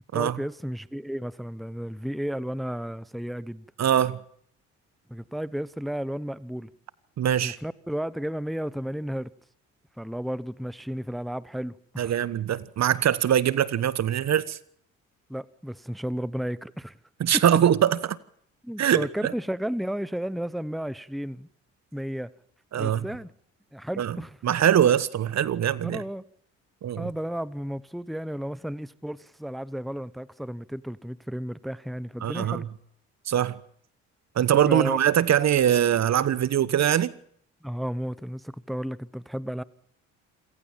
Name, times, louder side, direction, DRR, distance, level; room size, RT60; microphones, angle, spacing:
voice 1, 0.1-3.7 5.1-6.7 7.4-9.3 10.0-12.1 15.3-17.0 17.3-17.6 18.6-21.5 21.9-22.3 22.8-23.3 23.7-24.4 25.8-26.2 27.0-32.7 34.7-35.0 37.6-39.6, equal, ahead, 1.0 m, -33 dB
voice 2, 3.8-4.2 7.2-7.6 12.0-14.6 17.2-18.2 18.8-19.3 22.7-23.1 24.0-24.2 24.4-26.0 26.8-27.1 32.2-32.7 33.3-33.6 34.4-37.1, right 10 dB, 55° right, 1.3 m, -22 dB
27.0 x 16.5 x 7.4 m
supercardioid pair, 60°, 32 cm